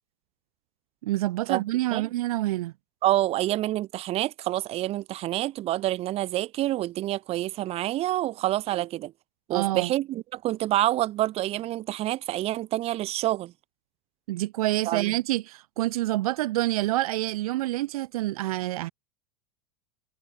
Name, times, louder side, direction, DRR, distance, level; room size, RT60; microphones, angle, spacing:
voice 1, 1.0-2.7 9.5-9.9 14.3-18.9, right 16 dB, 75° right, 1.2 m, -27 dB
voice 2, 3.0-9.1 9.5-13.5 14.9-15.1, right 15 dB, 30° right, 2.6 m, -27 dB
supercardioid pair, 155°, 19 cm